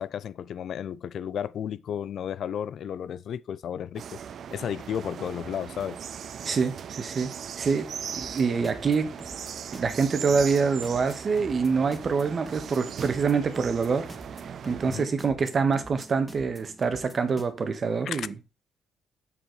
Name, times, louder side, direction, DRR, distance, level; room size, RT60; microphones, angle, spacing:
voice 1, 0.0-4.2 4.5-6.0 14.9-15.1 18.1-18.3, left 9 dB, 65° left, 0.5 m, -33 dB
sound 1, 3.9-15.0, right 8 dB, 60° right, 0.5 m, -39 dB
voice 2, 6.4-7.9 8.2-9.1 9.7-14.1 14.4-18.3, right 5 dB, 45° right, 1.5 m, -26 dB
sound 2, 8.2-17.4, equal, 5° right, 2.5 m, -47 dB
7.2 x 6.7 x 4.8 m
cardioid pair, 90°, 0 cm